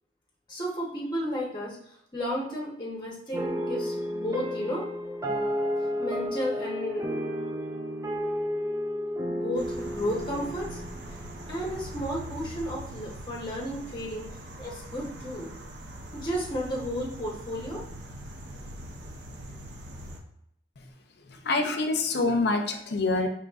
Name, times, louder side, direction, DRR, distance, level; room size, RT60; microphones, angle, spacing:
voice 1, 0.5-1.8 2.1-4.9 6.0-7.0 9.3-10.8 11.5-14.3 14.6-15.5 16.1-17.8, equal, 25° left, -3 dB, 0.8 m, -33 dB
sound 1, 3.3-11.9, equal, 20° right, 0.4 m, -32 dB
sound 2, 9.5-20.2, equal, 75° right, 0.8 m, -42 dB
voice 2, 21.4-23.3, left 3 dB, 65° left, 5 dB, 0.5 m, -25 dB
5.2 x 3.1 x 2.3 m, 0.73 s
head